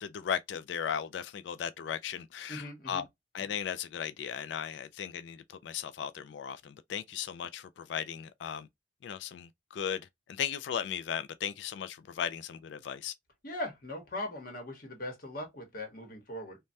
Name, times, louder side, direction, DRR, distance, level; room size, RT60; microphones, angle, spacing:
voice 1, 0.0-3.1 3.3-8.7 9.0-13.1, left 8 dB, 80° left, 0.3 m, -36 dB
voice 2, 2.5-3.0 13.4-16.6, left 1 dB, 55° left, 1.0 m, -40 dB
3.2 x 2.2 x 2.6 m
head